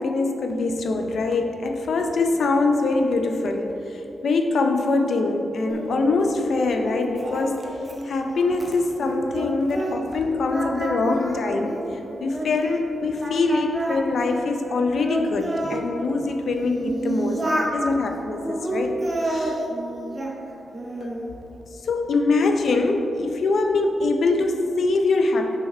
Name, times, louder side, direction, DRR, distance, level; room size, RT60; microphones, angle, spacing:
voice 1, 0.0-3.8 4.2-7.7 8.0-11.8 12.2-19.6 21.0-21.1 21.8-25.6, left 3 dB, 60° left, 4 dB, 0.6 m, -23 dB
Singing, 5.7-10.2 10.5-12.9 13.2-15.8 16.4-17.8 18.3-20.4 20.7-21.3, right 1 dB, 15° right, 0.7 m, -30 dB
5.9 x 5.8 x 4.3 m, 2.9 s
wide cardioid pair, 170°, 0 cm